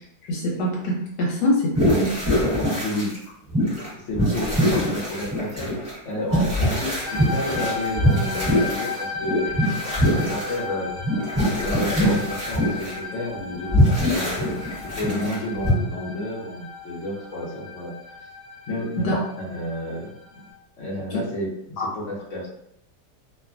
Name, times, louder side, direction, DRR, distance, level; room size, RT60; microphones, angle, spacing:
voice 1, 0.3-2.1 19.0-19.2 21.8-21.9, left 1 dB, 75° left, -3 dB, 1.3 m, -24 dB
sound 1, 1.8-3.2 3.5-3.9 4.1-10.6 11.0-12.9 13.5-15.4 15.6-15.7, equal, 15° right, 0.7 m, -23 dB
voice 2, 2.5-3.1 3.9-10.9 11.5-18.2 18.7-20.4 20.8-22.5, left 1 dB, 55° left, -4 dB, 0.9 m, -31 dB
sound 2, 7.0-20.5, left 4 dB, 35° right, 1.6 m, -35 dB
2.9 x 2.2 x 2.4 m, 0.76 s
omnidirectional pair, 1.8 m